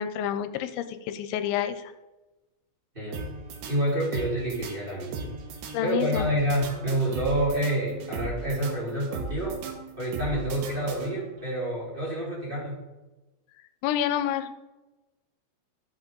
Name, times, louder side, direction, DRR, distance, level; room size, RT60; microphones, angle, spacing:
voice 1, 0.0-1.9 5.7-6.3 13.8-14.5, left 10 dB, 90° left, 10 dB, 2.9 m, -28 dB
sound 1, 3.1-11.5, right 3 dB, 80° right, 3.4 m, -38 dB
voice 2, 3.6-5.3 5.8-9.6 10.0-12.8, right 1 dB, 15° right, -7 dB, 2.7 m, -28 dB
14.0 x 5.3 x 3.8 m, 1.1 s
omnidirectional pair, 5.3 m